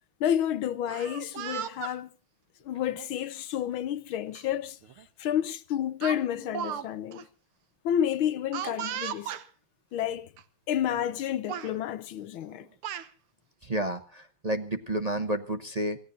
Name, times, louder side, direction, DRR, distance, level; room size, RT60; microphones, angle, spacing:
voice 1, 0.2-2.1 2.6-4.8 5.2-7.3 7.8-9.3 9.9-10.3 10.7-12.7, left 10 dB, 70° left, 1.7 m, -30 dB
Speech, 0.8-2.0 2.9-3.1 4.4-4.5 4.8-5.1 6.0-6.9 7.1-7.2 8.5-9.5 10.4-10.5 10.8-11.2 11.5-11.7 12.5-13.1, right 10 dB, 75° right, 1.9 m, -36 dB
voice 2, 13.6-16.0, right 1 dB, 45° right, 0.5 m, -30 dB
27.0 x 16.5 x 2.6 m
omnidirectional pair, 2.4 m